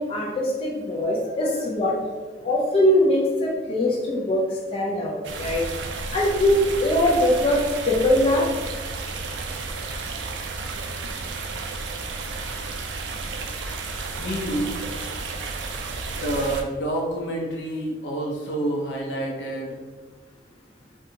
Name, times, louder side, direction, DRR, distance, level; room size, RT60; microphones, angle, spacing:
voice 1, 0.0-1.9 2.4-5.6 6.1-8.4, left 1 dB, 30° left, -3 dB, 0.4 m, -22 dB
sound 1, 5.2-16.6, right 3 dB, 75° right, 0.3 m, -32 dB
voice 2, 14.2-14.7 16.1-19.8, right 1 dB, 80° left, -1 dB, 0.6 m, -28 dB
2.5 x 2.3 x 2.8 m, 1.4 s
head